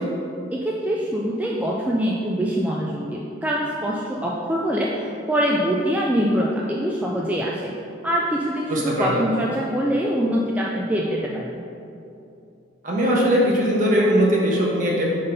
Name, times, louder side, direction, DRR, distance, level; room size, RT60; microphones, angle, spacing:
voice 1, 0.5-7.7 8.0-11.6, equal, 10° right, -4 dB, 0.3 m, -24 dB
voice 2, 8.7-9.2 12.8-15.0, equal, 40° right, -4 dB, 1.1 m, -20 dB
5.1 x 4.0 x 5.4 m, 2.7 s
head